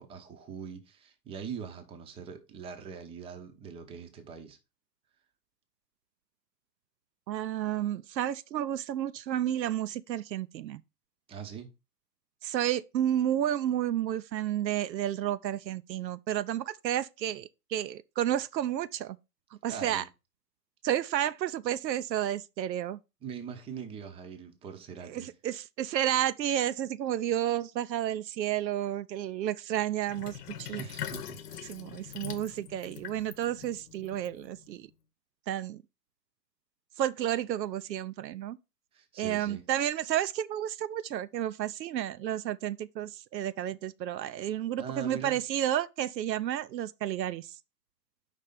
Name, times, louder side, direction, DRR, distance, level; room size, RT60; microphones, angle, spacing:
voice 1, 0.0-4.6 11.3-11.7 19.7-20.1 23.2-25.3 30.8-31.8 38.9-39.6 44.8-45.4, right 7 dB, 10° right, 0.6 m, -42 dB
voice 2, 7.3-10.8 12.4-19.2 19.6-20.0 20.8-23.0 25.0-30.8 31.7-34.9 35.5-35.8 37.0-38.6 39.2-47.5, right 11 dB, 85° right, 0.6 m, -31 dB
Sink (filling or washing), 30.1-34.8, left 9 dB, 65° left, 0.9 m, -43 dB
5.2 x 3.3 x 5.4 m
hypercardioid pair, 115°, 49 cm